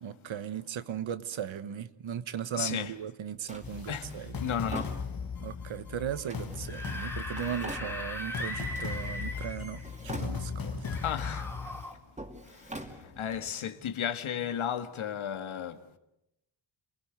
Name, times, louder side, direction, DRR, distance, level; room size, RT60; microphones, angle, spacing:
voice 1, 0.0-4.5 5.4-11.0, right 9 dB, 70° right, 1.3 m, -37 dB
voice 2, 2.6-2.9 3.9-4.1 4.4-4.9 11.0-11.5 13.2-15.8, left 8 dB, 85° left, 1.8 m, -33 dB
Drawer open or close, 3.5-5.6 6.3-8.4 8.7-9.5 9.8-10.7 11.1-13.6, right 1 dB, 15° right, 2.8 m, -45 dB
sound 1, 3.6-11.8, left 6 dB, 45° left, 1.7 m, -38 dB
Screaming / Screech, 6.5-9.9 10.8-11.9, left 1 dB, 5° left, 2.7 m, -39 dB
28.5 x 20.0 x 8.1 m
wide cardioid pair, 140°, 47 cm